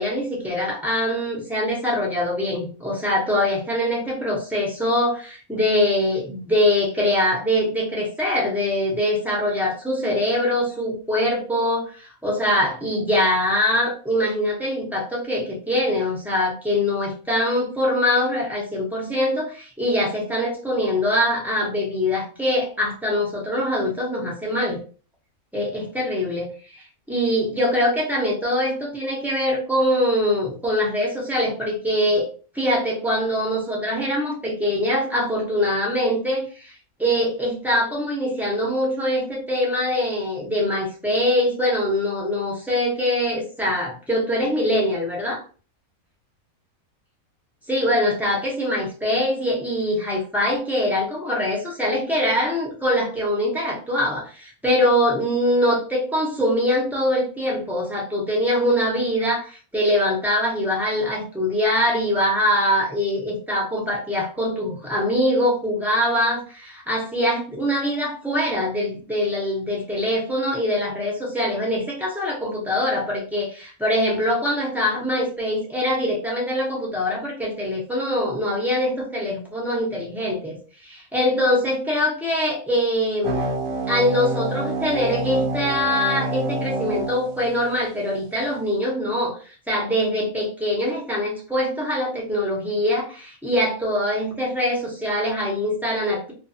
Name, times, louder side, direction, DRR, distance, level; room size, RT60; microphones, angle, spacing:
voice 1, 0.0-24.8 25.5-32.3 32.5-45.4 47.7-83.4 83.9-96.3, left 1 dB, ahead, -4 dB, 0.5 m, -23 dB
sound 1, 83.2-88.2, right 2 dB, 65° right, 0.9 m, -28 dB
2.5 x 2.4 x 2.7 m, 0.38 s
omnidirectional pair, 1.5 m